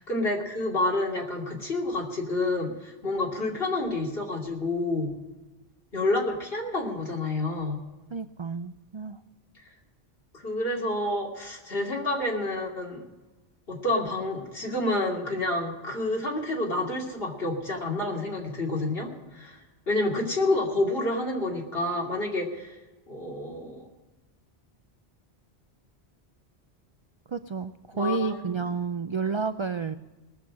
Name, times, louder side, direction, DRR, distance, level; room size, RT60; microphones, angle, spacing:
voice 1, 0.0-5.1 5.9-7.8 10.3-13.0 13.7-19.6 19.9-22.8 23.1-23.9 27.9-28.6 29.2-29.3, left 2 dB, 65° left, -1 dB, 2.9 m, -29 dB
voice 2, 8.1-9.2 27.3-30.0, right 4 dB, 50° right, 11 dB, 0.3 m, -30 dB
19.5 x 7.1 x 7.4 m, 1.1 s
omnidirectional pair, 1.1 m